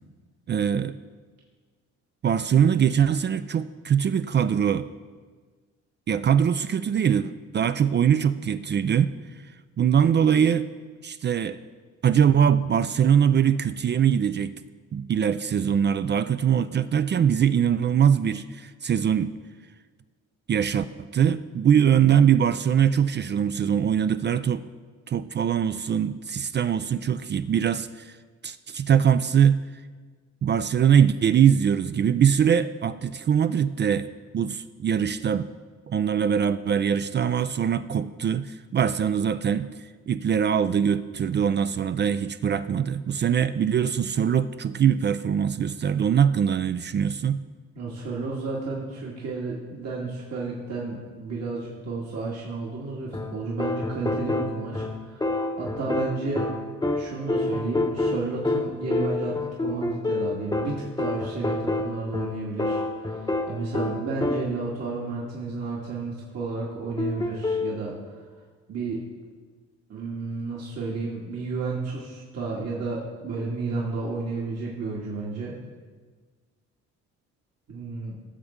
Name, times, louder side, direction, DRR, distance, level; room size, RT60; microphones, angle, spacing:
voice 1, 0.5-1.0 2.2-4.9 6.1-9.1 9.8-10.7 11.0-11.6 12.0-14.6 14.9-19.3 20.5-24.6 25.1-28.2 28.4-29.6 30.4-34.1 34.3-35.5 35.9-39.7 40.1-47.4, right 8 dB, 35° right, 12 dB, 0.4 m, -22 dB
voice 2, 47.8-55.2 55.6-56.5 57.0-62.8 63.5-67.9 68.7-69.0 69.9-75.6 77.7-78.2, right 3 dB, 60° right, -4 dB, 2.0 m, -32 dB
sound 1, 53.1-64.7 67.0-67.8, left 2 dB, 15° left, 0.9 m, -28 dB
17.5 x 6.8 x 3.7 m, 1.5 s
cardioid pair, 90°, 30 cm